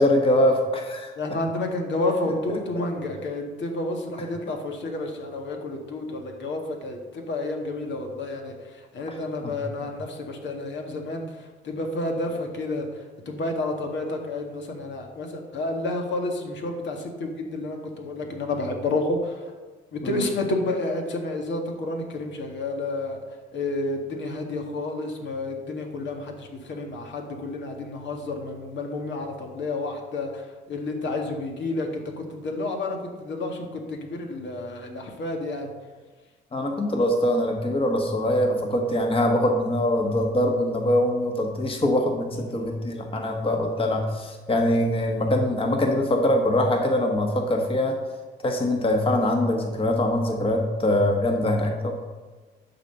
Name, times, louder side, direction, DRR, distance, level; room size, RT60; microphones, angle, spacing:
voice 1, 0.0-1.1 9.4-9.6 20.0-20.3 36.5-48.0 48.4-52.0, left 1 dB, 25° left, 2 dB, 1.4 m, -23 dB
voice 2, 1.2-19.5 19.9-23.2 23.5-35.7 42.5-42.6, left 2 dB, 65° left, 2 dB, 1.9 m, -30 dB
11.0 x 4.2 x 6.8 m, 1.3 s
cardioid pair, 90°, 20 cm